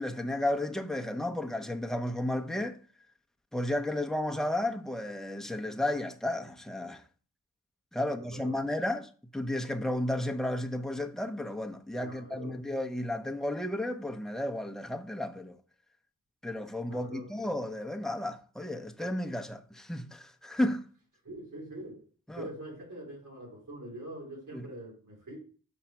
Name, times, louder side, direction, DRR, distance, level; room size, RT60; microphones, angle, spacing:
voice 1, 0.0-2.8 3.5-7.0 7.9-15.6 16.4-20.8 22.3-22.5 24.5-24.7, left 1 dB, ahead, 1.0 m, -33 dB
voice 2, 8.0-8.6 12.0-12.6 16.9-17.2 21.2-22.0 22.4-25.4, right 1 dB, 80° right, 4.0 m, -44 dB
7.3 x 3.7 x 5.8 m
cardioid pair, 50°, 32 cm